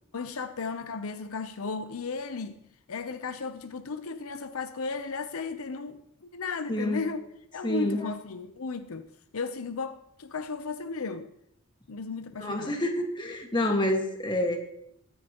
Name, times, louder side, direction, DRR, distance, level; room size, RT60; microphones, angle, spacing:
voice 1, 0.1-2.6 2.9-7.3 7.5-11.3 11.9-12.8, left 4 dB, 75° left, 0.7 m, -35 dB
voice 2, 6.7-7.0 7.6-8.0 12.4-14.6, left 1 dB, 20° left, 1.7 m, -28 dB
22.5 x 9.6 x 3.0 m
head